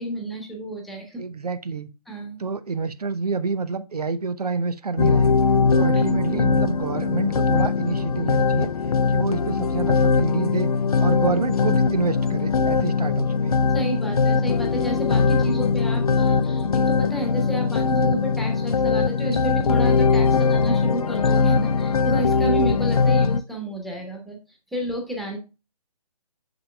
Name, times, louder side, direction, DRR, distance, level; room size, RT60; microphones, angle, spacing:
voice 1, 0.0-1.2 2.1-2.4 5.8-6.0 13.7-24.4 24.7-25.4, right 2 dB, ahead, 1.2 m, -30 dB
voice 2, 1.2-1.9 2.4-5.3 5.7-8.7 9.1-10.7 11.0-13.6, right 4 dB, 75° right, 0.7 m, -28 dB
sound 1, 5.0-23.4, left 5 dB, 70° left, 0.5 m, -21 dB
7.4 x 6.1 x 2.2 m
figure-of-eight pair, 145°, 20 cm